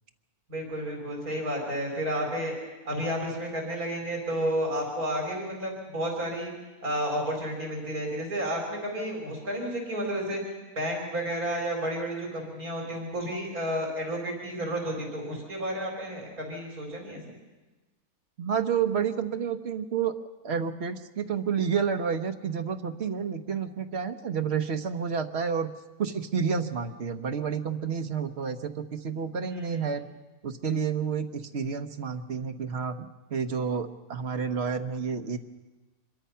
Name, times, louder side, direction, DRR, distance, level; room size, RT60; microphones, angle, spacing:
voice 1, 0.5-2.6 2.8-6.5 6.8-10.4 10.7-17.3 29.4-29.9, equal, 75° right, 1 dB, 4.7 m, -31 dB
voice 2, 18.4-20.1 20.4-25.7 26.0-30.0 30.4-33.0 33.3-35.4, right 6 dB, 50° right, 6 dB, 1.3 m, -30 dB
25.5 x 22.5 x 5.7 m, 1.2 s
omnidirectional pair, 1.6 m